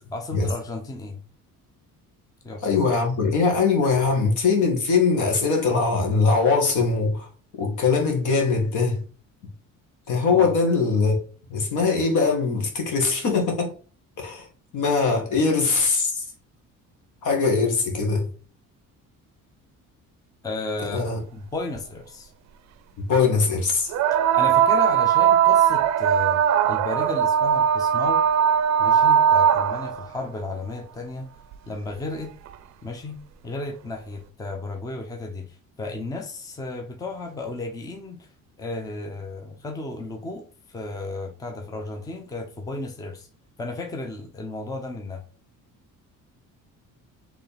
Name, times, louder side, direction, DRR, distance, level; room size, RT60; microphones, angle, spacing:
voice 1, 0.1-1.2 2.4-3.0 10.3-10.6 20.4-22.3 24.3-28.2 28.8-31.3 31.7-32.3 32.8-33.2 33.4-38.3 38.6-43.3 43.6-45.2, left 2 dB, 10° left, 0.6 m, -34 dB
voice 2, 2.6-7.3 7.6-9.0 10.1-11.2 11.5-13.7 14.2-14.5 14.7-16.2 17.2-18.3 20.9-21.2 23.1-23.9, left 4 dB, 65° left, 1.7 m, -21 dB
sound 1, 21.8-21.9 23.9-30.1 31.5-31.6 32.5-32.6, right 9 dB, 55° right, 0.5 m, -19 dB
4.6 x 3.3 x 3.4 m
cardioid pair, 155°, 33 cm